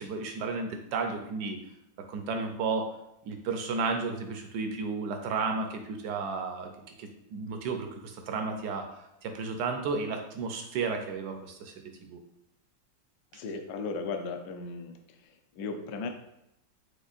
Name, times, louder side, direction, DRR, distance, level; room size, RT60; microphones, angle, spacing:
voice 1, 0.0-1.6 2.1-2.9 3.3-6.7 7.0-11.7 12.0-12.2 13.3-13.4, right 4 dB, 75° right, 5 dB, 1.0 m, -33 dB
voice 2, 13.3-14.9 15.2-16.1, left 4 dB, 70° left, 4 dB, 1.0 m, -36 dB
5.3 x 3.6 x 2.4 m, 0.83 s
omnidirectional pair, 2.1 m